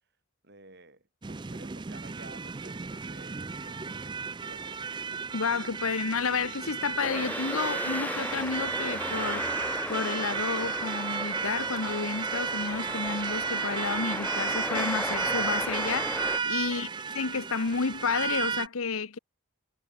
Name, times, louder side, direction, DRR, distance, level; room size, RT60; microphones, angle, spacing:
voice 1, 0.4-4.9 16.6-17.0, right 2 dB, 50° right, 5.4 m, -52 dB
sound 1, 1.2-18.7, right 5 dB, 20° right, 0.4 m, -33 dB
voice 2, 5.3-9.4 9.9-16.9 17.1-19.2, left 5 dB, 75° left, 0.9 m, -31 dB
sound 2, 7.0-16.4, left 1 dB, 5° left, 2.9 m, -36 dB
head